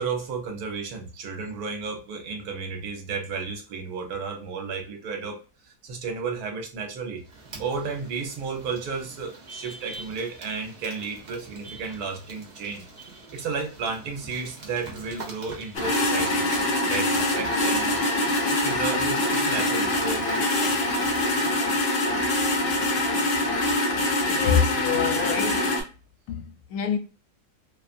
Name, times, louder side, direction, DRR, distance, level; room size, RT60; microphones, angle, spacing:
voice 1, 0.0-7.2 7.6-12.8 13.3-16.5 16.8-18.0 18.6-20.4, right 5 dB, 70° right, 1.2 m, -33 dB
sound 1, 7.2-21.6, right 3 dB, 45° right, 0.5 m, -43 dB
sound 2, 15.7-25.8, left 1 dB, 60° left, 0.7 m, -24 dB
voice 2, 24.3-25.8 26.3-27.0, left 7 dB, 75° left, 1.0 m, -26 dB
2.7 x 2.3 x 2.4 m
omnidirectional pair, 1.7 m